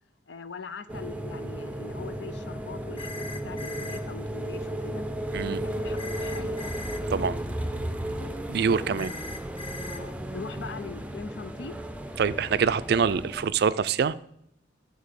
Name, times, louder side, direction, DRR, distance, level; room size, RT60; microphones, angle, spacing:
voice 1, 0.3-5.1 5.4-6.6 8.9-9.2 9.8-11.8, left 5 dB, 70° left, 0.6 m, -42 dB
sound 1, 0.9-13.5, right 1 dB, 5° right, 0.5 m, -34 dB
sound 2, 3.0-4.0 6.0-7.0 9.0-10.0, left 3 dB, 30° left, 0.7 m, -40 dB
voice 2, 8.5-9.1 12.2-14.1, right 6 dB, 60° right, 0.4 m, -25 dB
11.5 x 4.1 x 6.7 m
head